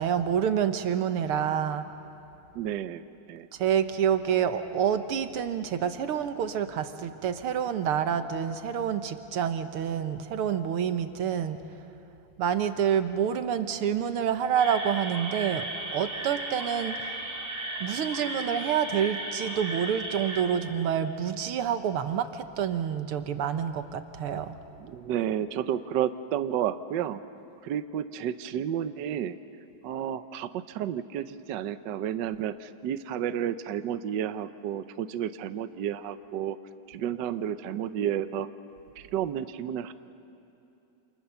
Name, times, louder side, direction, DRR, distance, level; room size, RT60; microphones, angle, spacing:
voice 1, 0.0-1.9 3.5-11.6 12.4-15.7 15.9-17.1 17.8-24.6, right 8 dB, 85° right, 9 dB, 2.0 m, -28 dB
voice 2, 2.5-3.0 3.3-3.5 24.8-27.2 27.6-29.4 29.8-36.6 36.9-38.5 39.0-39.9, right 10 dB, 65° right, 11 dB, 1.3 m, -31 dB
sound 1, 14.6-20.4, right 1 dB, 30° right, 4.4 m, -35 dB
29.0 x 28.0 x 7.0 m, 2.8 s
omnidirectional pair, 2.4 m